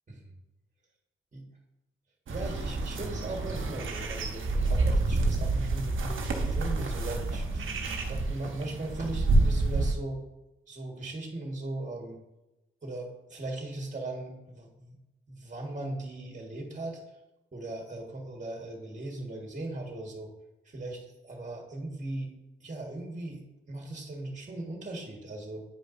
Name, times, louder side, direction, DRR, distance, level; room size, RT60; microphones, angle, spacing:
voice 1, 2.3-10.2 10.7-12.2 12.8-15.0 15.3-17.0 17.5-20.3 20.6-22.3 22.6-25.6, right 2 dB, 35° right, 1 dB, 1.6 m, -38 dB
sound 1, 2.3-9.9, right 2 dB, 75° right, 1.0 m, -28 dB
9.3 x 5.1 x 2.6 m, 0.99 s
cardioid pair, 55°, 21 cm